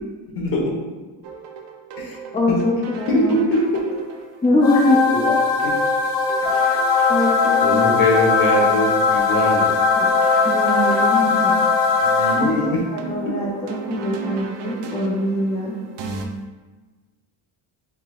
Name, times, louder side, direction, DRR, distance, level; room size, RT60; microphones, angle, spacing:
voice 1, 0.3-0.7 2.0-2.2 2.5-2.6 3.1-3.7 5.6-5.7 6.4-6.6 7.6-9.7 12.0-12.8 13.2-13.3, left 1 dB, 55° left, -1 dB, 1.2 m, -22 dB
sound 1, 1.2-16.2, right 5 dB, 75° right, 0.6 m, -37 dB
voice 2, 2.3-3.3 4.4-5.4 7.1-8.1 8.4-8.7 9.9-10.1 10.4-11.5 12.4-12.5 12.9-15.8, left 1 dB, 15° left, -2 dB, 0.4 m, -23 dB
sound 2, 4.6-12.9, left 4 dB, 85° left, 0.7 m, -19 dB
4.8 x 3.9 x 2.3 m, 1.3 s
cardioid pair, 145°, 42 cm